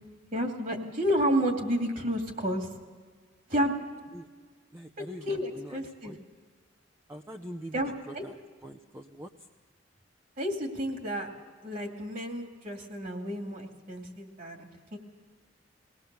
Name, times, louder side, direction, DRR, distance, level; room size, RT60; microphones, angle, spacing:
voice 1, 0.3-2.7 3.5-3.7 5.2-6.1 7.7-8.2 10.4-11.3 11.6-15.0, equal, 50° right, 2 dB, 2.6 m, -31 dB
voice 2, 4.7-6.2 7.1-9.5, equal, 15° right, 4 dB, 0.7 m, -44 dB
20.0 x 18.5 x 7.0 m, 1.5 s
head